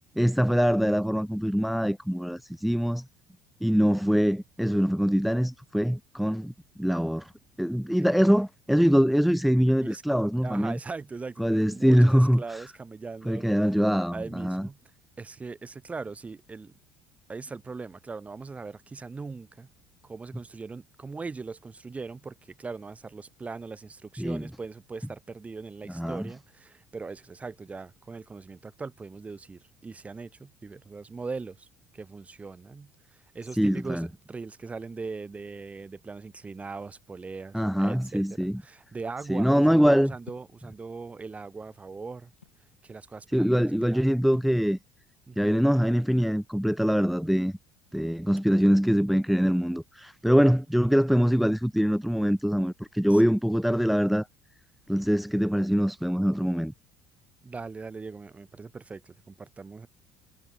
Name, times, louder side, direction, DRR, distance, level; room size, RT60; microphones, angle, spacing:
voice 1, 0.2-3.0 3.6-6.5 6.8-7.3 7.6-10.7 11.4-12.6 13.3-14.7 24.2-24.4 25.9-26.3 33.6-34.1 37.5-38.6 39.3-40.1 43.3-44.8 45.4-47.5 47.9-54.3 54.9-56.7, equal, ahead, 0.7 m, -23 dB
voice 2, 8.0-8.4 9.8-10.0 10.4-13.5 14.1-14.8 15.2-16.7 17.3-19.7 20.0-31.7 31.9-42.3 42.8-44.1 45.3-45.6 48.3-48.8 53.1-53.2 57.4-59.9, right 4 dB, 25° right, 4.2 m, -40 dB
sound 1, 40.3-40.6 41.5-42.7 44.3-44.6, left 7 dB, 85° left, 2.3 m, -51 dB
figure-of-eight pair, 60°, 6 cm